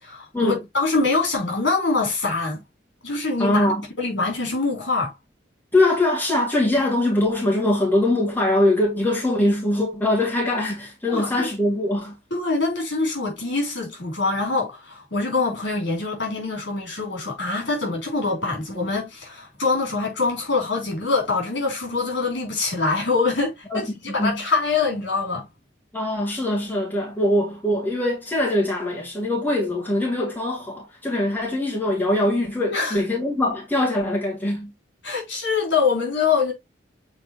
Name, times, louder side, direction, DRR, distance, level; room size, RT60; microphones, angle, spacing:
voice 1, 0.0-2.6 3.0-3.6 4.0-5.1 11.1-11.5 12.3-25.5 32.7-33.0 35.0-36.5, left 3 dB, 70° left, 4.2 m, -24 dB
voice 2, 3.4-3.9 5.7-12.2 23.7-23.8 24.2-24.4 25.9-34.7, left 1 dB, 10° left, 2.2 m, -22 dB
7.5 x 4.3 x 3.0 m
head